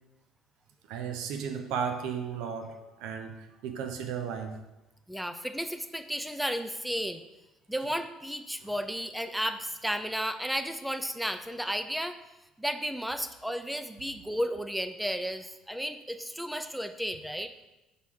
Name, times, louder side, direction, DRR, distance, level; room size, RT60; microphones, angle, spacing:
voice 1, 0.9-4.6, right 7 dB, 75° right, 6 dB, 0.8 m, -35 dB
voice 2, 5.1-7.2 7.7-12.2 12.6-17.5, equal, ahead, 9 dB, 0.5 m, -33 dB
5.6 x 4.0 x 4.8 m, 0.99 s
supercardioid pair, 75°, 0 cm